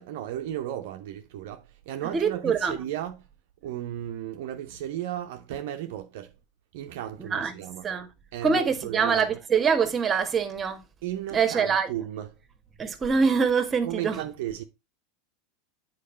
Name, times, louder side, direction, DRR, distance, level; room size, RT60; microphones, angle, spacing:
voice 1, 0.0-3.2 3.6-6.3 6.7-7.9 8.3-9.3 11.0-12.3 13.8-14.6, right 12 dB, 60° right, 0.7 m, -35 dB
voice 2, 2.1-2.7 7.3-7.5 7.8-8.1 8.4-10.8 11.3-11.9 12.8-14.2, right 6 dB, 25° right, 1.4 m, -24 dB
8.4 x 4.7 x 4.3 m
figure-of-eight pair, 85°, 0 cm